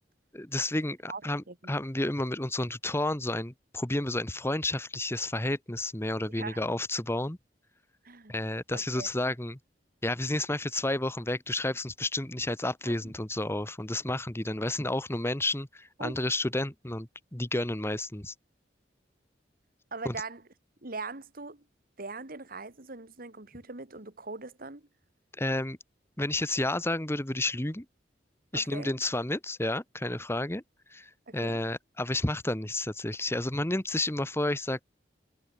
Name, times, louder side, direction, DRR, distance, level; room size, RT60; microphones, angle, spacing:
voice 1, 0.3-7.4 8.3-9.6 10.0-18.3 20.0-20.1 25.4-25.8 26.2-27.8 28.5-30.6 30.9-34.8, left 1 dB, 15° left, 1.3 m, -31 dB
voice 2, 8.0-8.3 8.7-9.1 12.9-13.1 16.0-16.2 19.9-20.4 20.8-21.6 22.0-24.9 28.5-28.9 31.3-31.6, right 3 dB, 55° right, 2.2 m, -41 dB
head